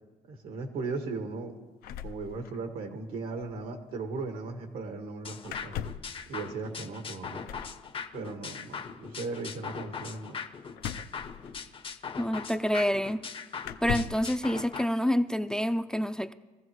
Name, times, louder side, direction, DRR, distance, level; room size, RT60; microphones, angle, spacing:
voice 1, 0.3-1.5 2.0-5.8 6.3-7.4 8.1-10.4, right 3 dB, 85° right, 5 dB, 1.7 m, -37 dB
sound 1, 1.8-2.9 3.1-3.2 3.4-3.6 5.4-6.2 7.4-7.8 10.8-11.9 12.8-12.9 13.6-14.3, left 9 dB, 90° left, 0.6 m, -38 dB
sound 2, 5.2-14.8, left 6 dB, 35° left, 0.7 m, -40 dB
voice 2, 12.2-13.2 13.8-16.3, equal, 5° left, 10 dB, 0.4 m, -27 dB
20.5 x 14.5 x 3.1 m, 1.3 s
cardioid pair, 105°, 15 cm